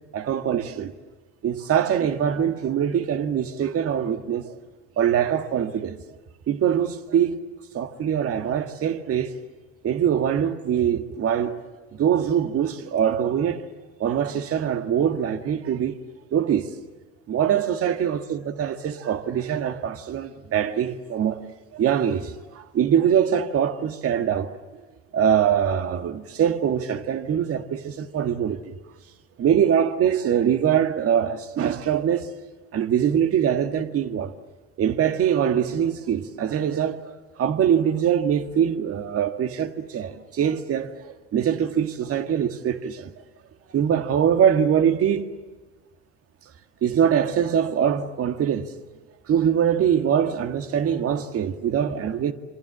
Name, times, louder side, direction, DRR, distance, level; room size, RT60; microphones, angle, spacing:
voice 1, 0.1-0.9 1.4-4.6 5.0-6.0 6.5-7.5 7.7-9.3 9.8-11.6 11.9-13.7 14.0-16.0 16.3-16.7 17.3-21.5 21.7-24.5 25.1-28.7 29.4-32.3 32.7-34.3 34.8-43.1 43.7-45.3 46.8-48.8 49.3-52.3, right 9 dB, 45° right, 1.9 m, -23 dB
27.0 x 26.5 x 7.6 m
hypercardioid pair, 70°, 33 cm